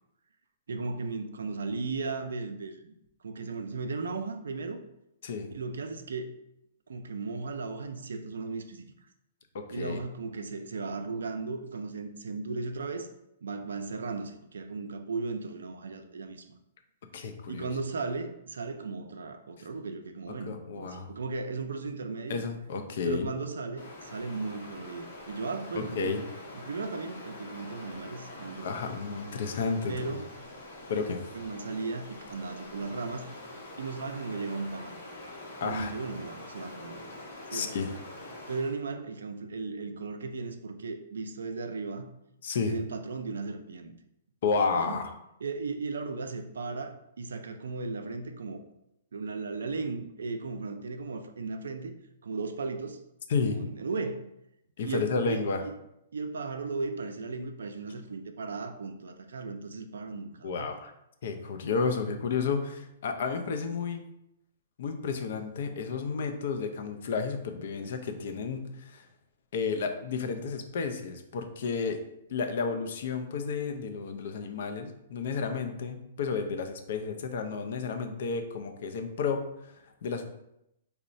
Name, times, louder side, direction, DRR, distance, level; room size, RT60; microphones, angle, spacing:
voice 1, 0.7-2.9 3.2-4.8 5.5-6.3 6.9-8.9 9.7-13.1 13.4-16.5 17.5-22.5 23.0-26.1 26.5-28.9 29.9-30.3 31.3-33.3 33.8-35.0 35.6-37.0 37.5-37.7 38.5-42.1 42.6-43.9 44.7-45.0 45.4-48.6 49.1-51.9 52.2-53.0 53.5-54.3 54.8-55.7 56.1-60.7, right 4 dB, 85° right, 7 dB, 0.3 m, -36 dB
voice 2, 9.5-10.0 17.1-17.7 19.6-19.7 20.5-21.1 22.3-23.3 25.7-26.2 28.6-30.2 30.9-31.2 35.6-35.9 37.5-37.9 42.4-42.7 44.4-45.2 53.3-53.6 54.8-55.6 60.4-60.9 61.2-64.0 64.8-69.1 69.5-72.0 72.3-80.3, left 5 dB, 65° left, 6 dB, 0.4 m, -32 dB
Stream, 23.8-38.8, left 2 dB, 85° left, 0.8 m, -45 dB
2.9 x 2.0 x 2.5 m, 0.81 s
hypercardioid pair, 140°, 0 cm